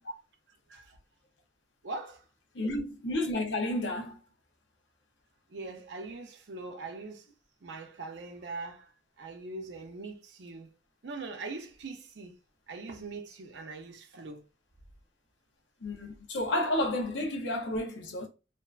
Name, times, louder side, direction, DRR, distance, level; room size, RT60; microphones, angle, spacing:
voice 1, 1.8-2.2 5.5-7.3 7.6-10.7 11.0-12.4 12.7-14.4, right 3 dB, 75° right, 0.6 m, -42 dB
voice 2, 2.5-4.2 15.8-18.3, left 1 dB, 85° left, 0.6 m, -31 dB
2.6 x 2.2 x 2.3 m
head